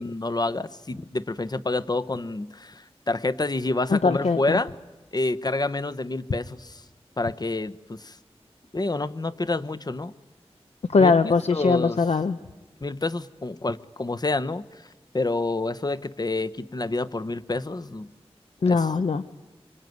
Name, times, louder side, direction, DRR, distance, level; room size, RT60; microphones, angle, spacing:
voice 1, 0.0-4.7 5.1-6.8 7.2-8.2 8.7-10.1 11.0-11.1 11.5-12.0 12.8-14.6 15.1-18.1 18.6-18.9, left 2 dB, 40° left, 13 dB, 0.9 m, -28 dB
voice 2, 3.9-4.6 10.9-12.4 18.6-19.2, left 4 dB, 85° left, 10 dB, 0.9 m, -21 dB
25.5 x 25.0 x 9.4 m, 1.1 s
wide cardioid pair, 70°, 11 cm